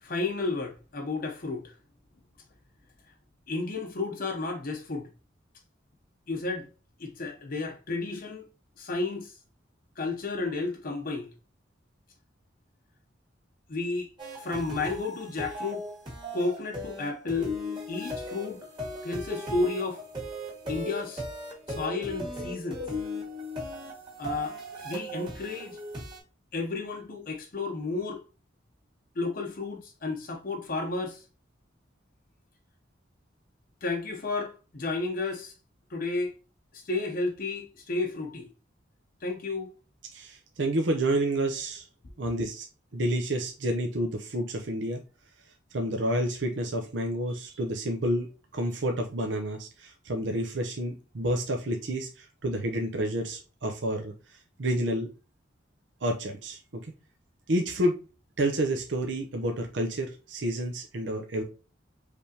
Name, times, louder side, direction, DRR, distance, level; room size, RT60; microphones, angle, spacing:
voice 1, 0.0-1.8 3.5-5.1 6.3-6.7 7.0-8.5 8.8-9.4 10.0-11.3 13.7-14.1 14.4-15.9 16.3-17.5 17.9-18.7 19.0-20.0 20.6-21.2 21.7-22.8 24.2-24.6 24.8-25.8 26.5-28.2 29.2-31.2 33.8-35.5 35.9-36.3 36.7-38.5 39.2-39.7, left 3 dB, 50° left, 0.7 m, -32 dB
sound 1, 14.2-26.2, left 1 dB, 25° right, 1.8 m, -37 dB
voice 2, 40.1-41.9 42.2-42.7 42.9-45.0 45.7-54.1 54.6-55.1 56.0-56.9 57.5-57.9 58.4-61.4, right 1 dB, 70° right, 0.7 m, -29 dB
5.0 x 3.3 x 2.7 m
head